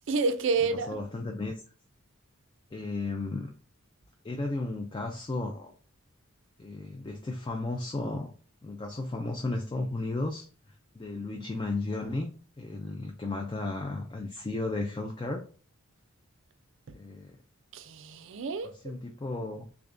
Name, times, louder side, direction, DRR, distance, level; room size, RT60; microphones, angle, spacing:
voice 1, 0.1-1.0 16.9-17.0 17.7-18.9, right 4 dB, 55° right, 0.4 m, -29 dB
voice 2, 0.9-1.6 2.7-3.5 4.2-5.8 6.6-8.3 8.6-10.5 10.9-15.4 16.9-17.4 18.8-19.6, left 2 dB, 20° left, 0.3 m, -34 dB
3.6 x 3.3 x 2.5 m
head